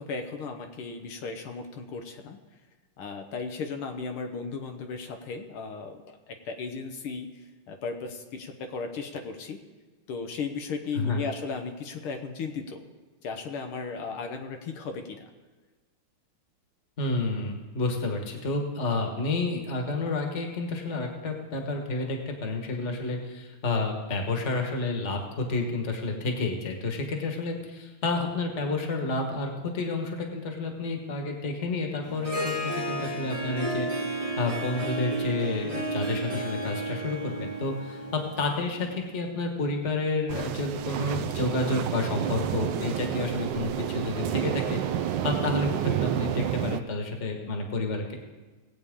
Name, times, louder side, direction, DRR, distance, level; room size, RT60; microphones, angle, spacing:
voice 1, 0.0-2.4 3.0-9.6 10.1-12.8 13.2-15.3, left 4 dB, 80° left, 5 dB, 1.8 m, -36 dB
voice 2, 17.0-48.1, left 3 dB, 35° left, 3 dB, 1.6 m, -30 dB
Harp, 32.0-39.1, right 1 dB, 25° right, 0.8 m, -33 dB
sound 1, 40.3-46.8, right 10 dB, 75° right, 1.1 m, -30 dB
19.0 x 8.4 x 3.7 m, 1.3 s
omnidirectional pair, 2.3 m